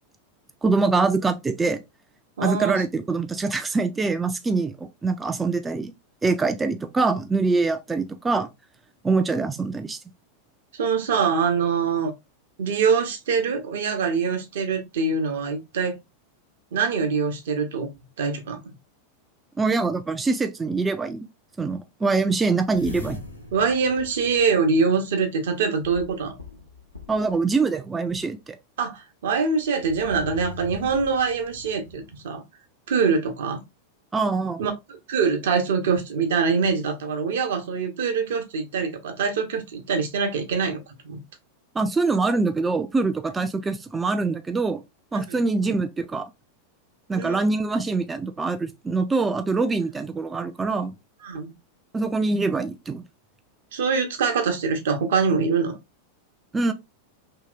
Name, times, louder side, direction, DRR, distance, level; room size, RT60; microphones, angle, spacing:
voice 1, 0.6-1.8 2.4-5.9 6.2-8.5 9.0-10.0 19.6-21.3 21.6-23.2 27.1-28.6 34.1-34.6 41.8-44.8 45.1-46.3 47.1-50.9 51.9-53.0 56.5-56.7, right 3 dB, 15° right, 0.4 m, -24 dB
voice 2, 2.4-2.8 10.7-12.1 12.6-16.0 16.7-17.9 18.2-18.6 23.5-26.4 28.8-32.4 32.9-33.6 34.6-41.2 45.3-45.4 47.1-47.5 51.2-51.5 53.7-55.8, right 5 dB, 60° right, 0.8 m, -24 dB
sound 1, 22.7-25.1 25.8-27.4 28.1-28.2 29.6-32.2, left 2 dB, 90° left, 0.7 m, -41 dB
2.9 x 2.7 x 2.4 m
figure-of-eight pair, 90°, 0 cm